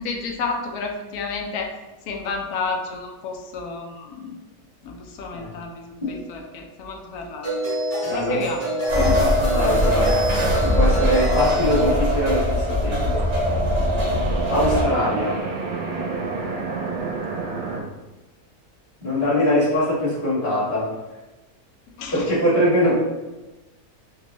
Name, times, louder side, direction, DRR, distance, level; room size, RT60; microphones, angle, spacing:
voice 1, 0.0-1.7 2.1-4.4 4.8-5.8 6.1-7.5 8.1-8.7 14.6-14.8 15.1-15.2 22.0-22.2, left 4 dB, 85° left, 2 dB, 1.1 m, -31 dB
sound 1, 6.0-6.2 7.4-11.9, equal, 15° left, 0.6 m, -26 dB
voice 2, 8.0-8.4 8.9-10.1 10.6-13.2 14.5-15.4 19.0-20.9 22.1-22.9, equal, 35° left, -9 dB, 1.6 m, -22 dB
sound 2, 8.9-14.8, equal, 35° right, 0.5 m, -22 dB
sound 3, 9.7-12.9 13.2-17.8, right 3 dB, 80° right, 1.1 m, -31 dB
4.0 x 2.2 x 2.9 m, 1.1 s
omnidirectional pair, 1.6 m